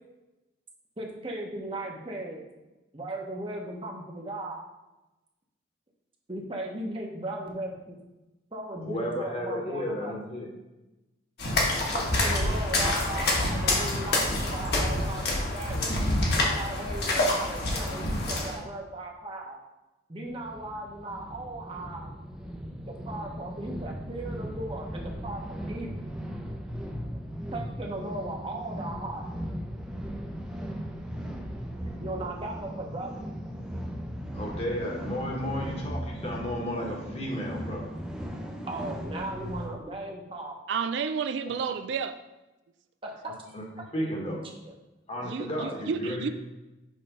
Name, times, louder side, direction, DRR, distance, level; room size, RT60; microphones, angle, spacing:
voice 1, 1.0-2.4 2.9-4.6 6.3-8.0 8.5-10.2 11.9-15.9 16.3-19.6 20.1-22.1 22.8-26.1 27.5-29.2 32.0-33.2 35.5-35.7 38.7-40.5 43.0-43.3 44.4-44.7, right 1 dB, 30° right, 0 dB, 0.9 m, -37 dB
voice 2, 8.8-10.5 34.3-37.9 41.4-41.5 43.5-43.6 43.9-44.4 45.1-46.3, equal, 30° left, -1 dB, 1.2 m, -33 dB
Footsteps Puddles B, 11.4-18.6, left 1 dB, 55° left, 1.3 m, -27 dB
sound 1, 20.3-39.7, equal, 5° right, 0.6 m, -38 dB
voice 3, 40.7-42.2 45.2-46.3, right 6 dB, 65° right, 9 dB, 0.3 m, -31 dB
6.2 x 3.3 x 5.5 m, 1.0 s
head